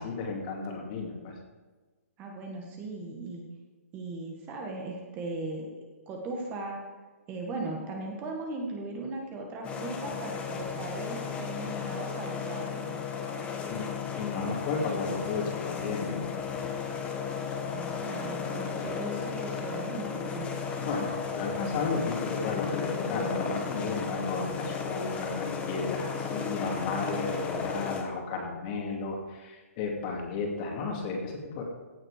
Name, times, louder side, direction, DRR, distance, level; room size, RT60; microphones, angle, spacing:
voice 1, 0.0-1.3 13.6-13.9 14.1-16.2 20.8-31.6, left 4 dB, 30° left, 1 dB, 2.6 m, -33 dB
voice 2, 2.2-3.5 3.9-5.7 6.1-6.8 7.3-12.9 17.7-20.7, right 2 dB, 20° right, 1 dB, 1.8 m, -38 dB
sound 1, 9.6-28.0, left 6 dB, 15° left, 1.3 m, -34 dB
16.0 x 7.6 x 5.0 m, 1.3 s
hypercardioid pair, 155°, 8 cm